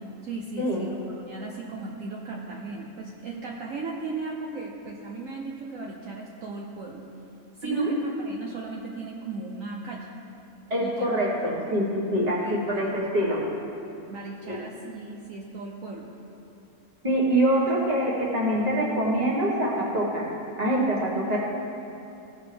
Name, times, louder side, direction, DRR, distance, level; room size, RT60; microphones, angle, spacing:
voice 1, 0.2-7.0 7.6-10.1 10.8-11.1 12.4-12.9 14.1-16.1, right 3 dB, 65° right, -2 dB, 1.1 m, -36 dB
voice 2, 10.7-13.4 14.4-14.6 17.0-20.3 20.6-21.4, right 1 dB, 30° right, -3 dB, 1.5 m, -25 dB
16.0 x 6.0 x 3.4 m, 2.8 s
omnidirectional pair, 1.6 m